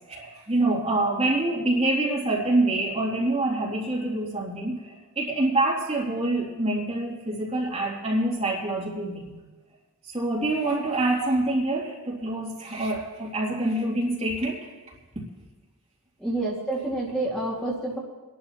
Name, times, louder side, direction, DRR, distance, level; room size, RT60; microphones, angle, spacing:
voice 1, 0.1-9.4 10.1-14.6, right 2 dB, 30° right, -4 dB, 2.6 m, -26 dB
voice 2, 16.2-18.0, right 2 dB, 5° left, -5 dB, 2.0 m, -28 dB
25.0 x 11.5 x 2.9 m, 1.2 s
head